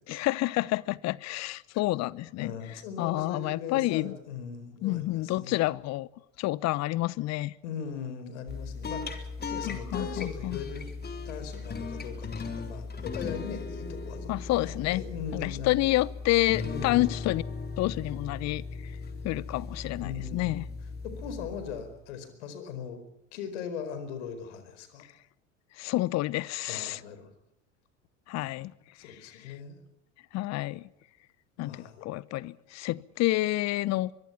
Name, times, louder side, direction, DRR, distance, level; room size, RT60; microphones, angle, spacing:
voice 1, 0.1-2.5 3.0-4.2 4.8-6.1 6.4-7.5 9.7-10.6 14.3-15.0 15.3-17.4 17.8-18.9 19.2-20.6 25.8-27.0 28.3-28.7 29.0-29.1 29.5-29.6 30.3-30.9 31.6-34.1, left 18 dB, 45° left, 0.9 m, -29 dB
voice 2, 2.4-5.6 7.6-10.9 11.2-14.3 14.6-15.9 16.6-17.0 20.0-20.7 21.0-23.0 23.3-25.0 26.7-27.3 28.9-29.8 31.6-32.1, left 7 dB, 65° left, 4.8 m, -40 dB
sound 1, 8.5-22.0, left 4 dB, 25° left, 3.6 m, -38 dB
23.5 x 23.5 x 5.9 m
figure-of-eight pair, 70°, 38 cm